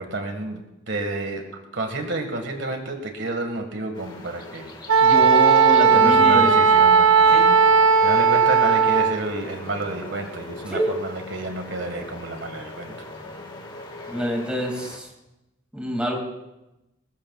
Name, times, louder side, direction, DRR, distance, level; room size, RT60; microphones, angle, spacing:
voice 1, 0.0-4.7 5.9-7.3 8.0-12.9, right 2 dB, 60° right, 5 dB, 1.7 m, -30 dB
sound 1, 3.9-15.0, left 2 dB, 20° left, 1.7 m, -43 dB
Wind instrument woodwind instrument, 4.9-9.2, right 6 dB, 80° right, 0.7 m, -16 dB
voice 2, 5.0-6.6 7.3-7.5 10.7-11.0 14.1-15.1 15.7-16.2, equal, 5° right, 0 dB, 2.4 m, -26 dB
sound 2, 5.1-14.2, left 1 dB, 80° left, 4.5 m, -43 dB
20.5 x 20.5 x 2.4 m, 0.95 s
head